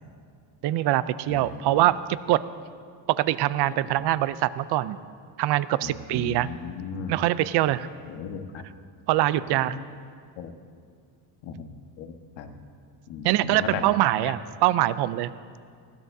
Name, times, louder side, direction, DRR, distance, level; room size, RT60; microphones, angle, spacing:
voice 1, 0.6-2.4 3.1-5.0 5.4-6.5 7.1-7.9 9.1-9.8 13.2-15.3, right 15 dB, 60° right, 16 dB, 0.5 m, -23 dB
voice 2, 1.3-1.6 3.7-3.8 5.8-7.1 8.1-8.6 9.4-9.9 10.4-10.5 11.4-12.5 13.1-13.8 14.2-14.3, left 7 dB, 70° left, 5 dB, 1.4 m, -37 dB
20.0 x 17.0 x 2.7 m, 2.2 s
cardioid pair, 145°, 46 cm